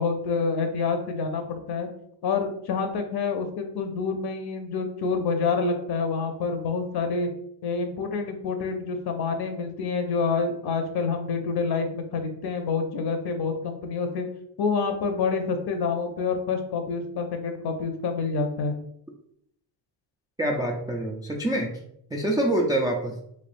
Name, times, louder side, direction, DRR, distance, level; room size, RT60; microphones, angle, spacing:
voice 1, 0.0-1.9 2.2-7.3 7.6-14.3 14.6-18.7, left 4 dB, 50° left, 5 dB, 0.8 m, -27 dB
voice 2, 20.4-21.7 22.1-23.1, right 1 dB, 10° right, -1 dB, 0.3 m, -25 dB
3.5 x 3.3 x 2.6 m, 0.72 s
supercardioid pair, 85°, 49 cm